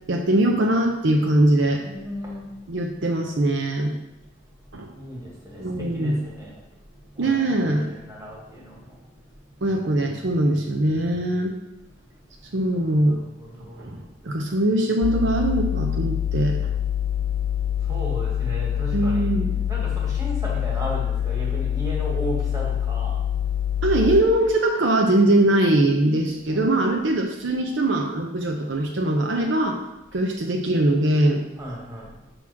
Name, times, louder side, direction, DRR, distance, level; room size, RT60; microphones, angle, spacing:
voice 1, 0.1-1.8 2.7-3.9 4.7-4.9 5.6-6.2 7.2-7.9 9.6-11.5 12.5-13.2 13.8-16.6 18.9-19.5 23.8-29.8 30.1-31.4, right 1 dB, 70° right, 1 dB, 0.8 m, -21 dB
voice 2, 1.7-2.8 4.6-9.7 11.8-14.4 16.8-19.3 19.7-23.3 26.5-27.0 31.6-32.3, equal, 20° right, -4 dB, 1.8 m, -37 dB
sound 1, 15.0-24.2, left 10 dB, 40° left, 0.3 m, -25 dB
6.2 x 4.0 x 5.8 m, 0.93 s
head